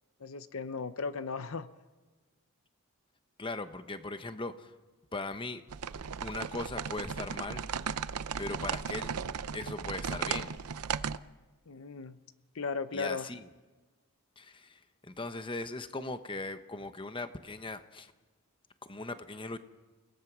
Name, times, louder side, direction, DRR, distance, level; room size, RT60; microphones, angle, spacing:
voice 1, 0.2-1.7 11.7-12.2 12.5-13.3, left 4 dB, 65° left, 12 dB, 0.7 m, -36 dB
voice 2, 3.4-4.7 5.1-5.6 6.2-7.7 8.4-9.1 9.5-10.6 12.9-13.5 14.4-18.1 18.8-19.6, left 2 dB, 20° left, 9 dB, 1.0 m, -39 dB
sound 1, 5.7-11.2, right 6 dB, 85° right, 0.6 m, -36 dB
30.0 x 18.0 x 6.1 m, 1.3 s
head